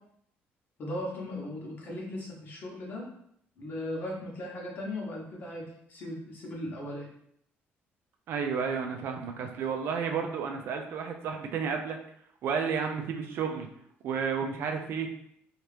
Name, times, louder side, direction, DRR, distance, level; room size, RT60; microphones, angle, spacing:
voice 1, 0.8-3.1 3.6-7.1, left 1 dB, 45° left, -3 dB, 0.9 m, -37 dB
voice 2, 8.3-12.0 12.4-13.7 14.0-15.1, right 6 dB, 60° right, 4 dB, 0.4 m, -31 dB
2.8 x 2.4 x 3.2 m, 0.71 s
cardioid pair, 160°, 4 cm